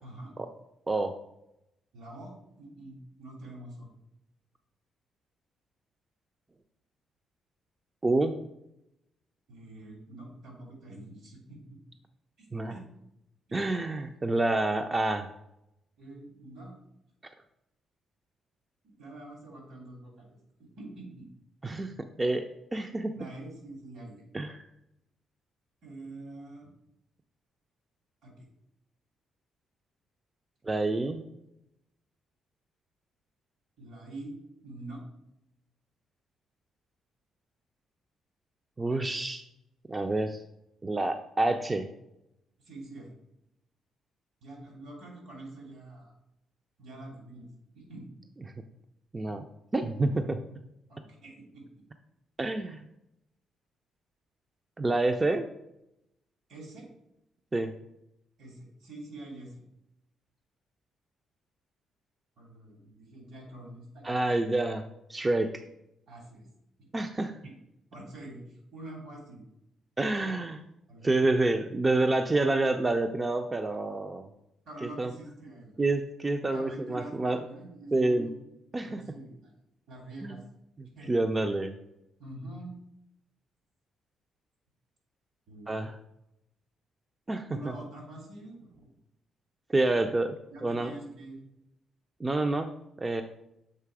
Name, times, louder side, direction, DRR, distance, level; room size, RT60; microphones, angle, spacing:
voice 1, 0.0-0.3 1.9-3.9 9.5-11.8 12.4-12.8 16.0-16.7 18.8-21.3 23.2-24.2 25.8-26.7 28.2-28.5 33.8-34.3 34.6-35.0 42.6-43.2 44.4-46.1 46.8-47.5 47.7-48.1 50.2-50.3 50.9-51.6 56.5-56.9 58.4-59.6 62.4-64.4 66.1-66.5 66.8-66.9 67.4-67.5 67.9-69.5 70.1-70.3 70.9-71.1 71.9-72.0 74.6-75.9 76.5-78.3 78.7-79.5 79.9-80.4 80.9-81.1 82.2-82.7 85.5-85.8 87.4-88.9 90.5-91.4, right 2 dB, 75° right, 0 dB, 2.5 m, -45 dB
voice 2, 0.9-1.2 8.0-8.4 12.5-12.7 13.5-15.3 21.6-21.9 22.2-22.5 22.7-23.1 24.3-24.6 30.6-31.2 38.8-39.4 39.9-40.4 40.8-41.9 49.1-49.4 49.7-50.4 52.4-52.8 54.8-55.5 57.5-57.7 64.0-64.8 65.1-65.6 66.9-67.4 70.0-70.6 71.0-74.3 74.8-75.1 75.8-77.4 77.9-78.3 78.7-79.0 80.2-80.4 80.8-81.7 85.7-86.0 87.3-87.7 89.7-90.3 90.6-90.9 92.2-93.2, right 2 dB, 25° right, 6 dB, 0.4 m, -28 dB
6.7 x 3.2 x 4.8 m, 0.82 s
cardioid pair, 90°, 0 cm